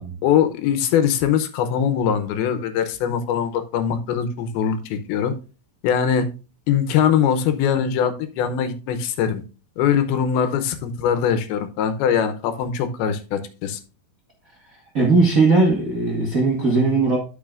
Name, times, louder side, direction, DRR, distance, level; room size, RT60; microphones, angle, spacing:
voice 1, 0.2-5.3 5.8-6.3 6.7-9.4 9.8-13.8, left 8 dB, 90° left, 2.7 m, -22 dB
voice 2, 14.9-17.2, right 3 dB, 70° right, 0.7 m, -18 dB
12.0 x 6.0 x 2.5 m
omnidirectional pair, 4.3 m